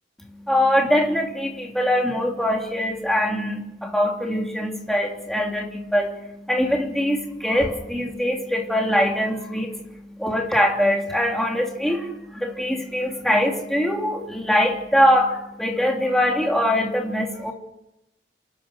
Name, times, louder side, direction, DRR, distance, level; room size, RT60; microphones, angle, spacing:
voice 1, 0.4-17.5, equal, ahead, 0 dB, 3.1 m, -23 dB
27.5 x 11.5 x 9.4 m, 0.86 s
head